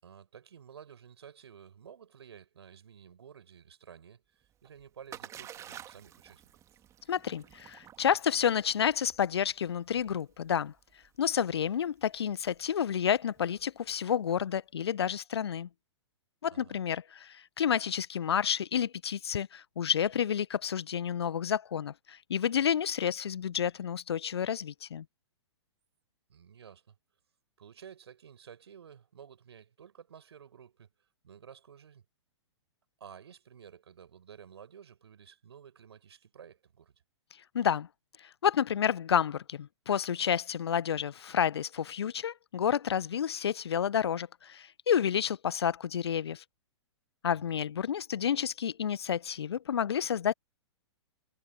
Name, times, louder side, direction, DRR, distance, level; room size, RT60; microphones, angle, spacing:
voice 1, 0.0-6.8 16.5-16.8 26.3-27.0 27.6-30.9 31.2-32.0 33.0-36.9 47.3-47.6, right 8 dB, 60° right, 5.9 m, -52 dB
Splash splatter, 4.4-14.3, right 10 dB, 20° right, 2.2 m, -52 dB
voice 2, 7.1-10.7 11.2-15.7 16.4-25.0 37.5-37.9 38.4-46.4 47.2-50.3, left 8 dB, 60° left, 0.9 m, -30 dB
figure-of-eight pair, 110°, 15 cm